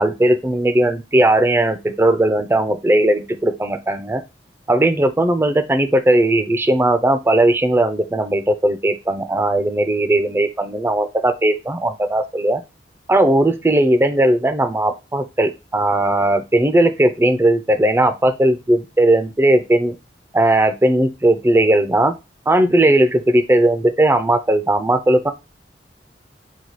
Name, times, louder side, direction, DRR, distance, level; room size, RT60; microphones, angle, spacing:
voice 1, 0.0-4.2 4.7-12.6 13.1-20.0 20.3-22.1 22.5-25.3, right 1 dB, 15° right, 9 dB, 0.4 m, -17 dB
4.0 x 2.3 x 4.5 m, 0.25 s
head